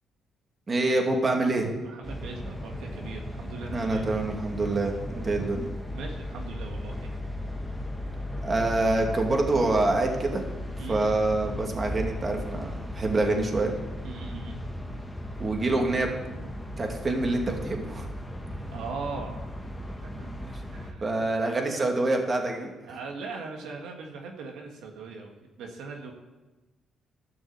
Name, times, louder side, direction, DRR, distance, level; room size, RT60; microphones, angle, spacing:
voice 1, 0.7-1.7 3.7-4.9 5.2-5.7 8.4-10.4 10.9-13.7 15.4-16.1 16.8-18.1 20.5-20.6 21.0-22.7, right 2 dB, 30° right, 2 dB, 2.4 m, -26 dB
voice 2, 1.8-4.1 5.5-5.6 5.9-7.1 10.8-11.1 14.0-14.6 18.7-19.4 20.0-20.3 20.7-21.3 21.7-22.0 22.8-26.1, right 4 dB, 85° right, 1 dB, 1.8 m, -40 dB
sound 1, 2.0-20.9, left 1 dB, 5° left, 1.7 m, -36 dB
13.0 x 6.2 x 8.3 m, 1.1 s
cardioid pair, 90°, 0 cm